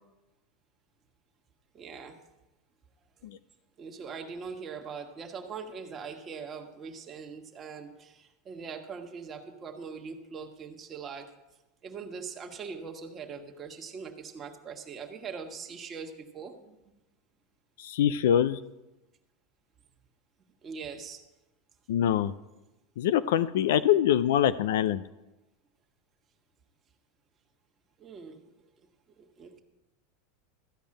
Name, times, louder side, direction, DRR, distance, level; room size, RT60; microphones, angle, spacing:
voice 1, 1.7-2.2 3.2-3.3 3.8-11.3 11.8-16.8 20.6-21.3 28.0-28.4 29.2-29.6, right 5 dB, 25° right, 3 dB, 1.5 m, -42 dB
voice 2, 17.8-18.6 21.9-22.3 23.0-25.0, left 10 dB, 80° left, 14 dB, 0.4 m, -24 dB
14.0 x 5.3 x 8.8 m, 1.0 s
supercardioid pair, 130°, 0 cm